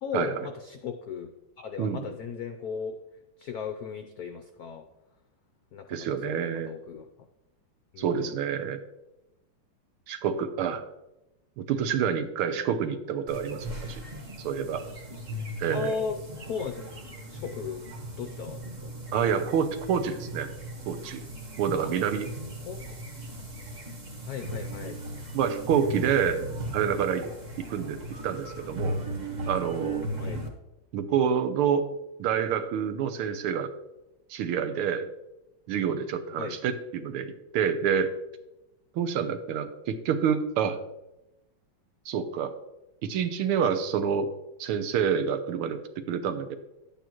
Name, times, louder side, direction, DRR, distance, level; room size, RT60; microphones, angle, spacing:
voice 1, 0.0-1.3 1.6-3.0 3.4-4.8 5.7-7.1 7.9-8.4 15.7-16.2 16.5-18.9 21.8-21.9 22.6-23.0 24.2-25.0 30.2-30.5 36.4-36.6, left 6 dB, 70° left, 5 dB, 0.9 m, -36 dB
voice 2, 5.9-6.7 8.0-8.8 10.1-10.8 11.6-14.0 14.4-14.8 15.6-15.9 19.1-20.5 20.9-21.2 21.6-22.3 25.3-26.5 26.7-27.3 27.6-29.0 29.5-30.1 30.9-31.9 32.2-33.7 34.3-35.1 35.7-38.1 38.9-40.8 42.1-42.5 43.0-44.3 44.6-46.6, right 7 dB, 90° right, 10 dB, 1.7 m, -28 dB
sound 1, 13.3-30.5, right 1 dB, 30° right, 0.9 m, -37 dB
11.5 x 8.5 x 3.0 m, 0.95 s
omnidirectional pair, 2.3 m